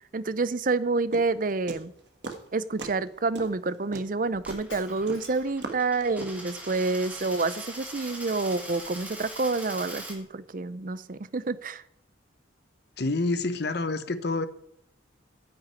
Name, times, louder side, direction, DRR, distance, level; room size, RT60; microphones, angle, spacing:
voice 1, 0.1-1.9 2.5-11.8, right 3 dB, 45° right, 0.5 m, -28 dB
sound 1, 1.1-2.5 2.8-3.1 3.3-6.5, right 3 dB, 60° right, 1.5 m, -38 dB
Coin (dropping), 4.3-10.2, right 1 dB, 10° right, 2.4 m, -41 dB
Shatter, 4.7-5.7, left 4 dB, 85° left, 4.2 m, -48 dB
voice 2, 13.0-14.5, left 3 dB, 55° left, 0.9 m, -27 dB
10.0 x 6.3 x 8.9 m
head